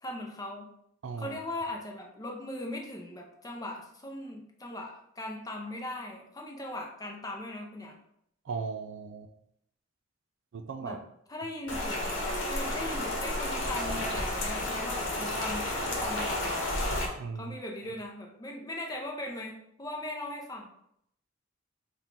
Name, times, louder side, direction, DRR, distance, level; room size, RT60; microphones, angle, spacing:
voice 1, 0.0-0.7 1.2-8.0 10.8-11.0 11.3-16.7 17.3-20.7, left 1 dB, 20° left, 1 dB, 0.6 m, -39 dB
voice 2, 1.0-1.4 8.5-9.3 10.5-11.0 17.2-17.6, right 5 dB, 70° right, 7 dB, 0.4 m, -37 dB
Rain, 11.7-17.1, left 1 dB, 70° left, 1.0 m, -31 dB
4.3 x 2.4 x 3.7 m, 0.72 s
head